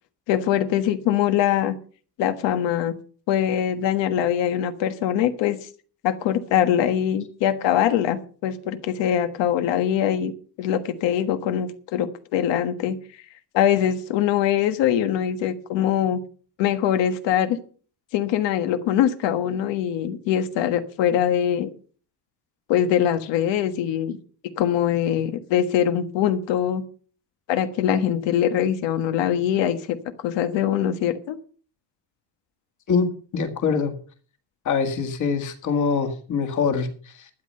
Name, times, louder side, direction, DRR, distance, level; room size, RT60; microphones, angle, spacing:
voice 1, 0.3-1.8 2.2-3.0 3.3-5.7 6.0-10.3 10.6-13.0 13.5-16.2 16.6-17.6 18.1-21.7 22.7-24.2 24.5-26.8 27.5-30.0 30.2-31.4, left 10 dB, 85° left, 1.5 m, -22 dB
voice 2, 33.3-33.9 34.7-37.3, left 5 dB, 45° left, 1.9 m, -24 dB
12.5 x 9.8 x 5.5 m
cardioid pair, 180°, 42 cm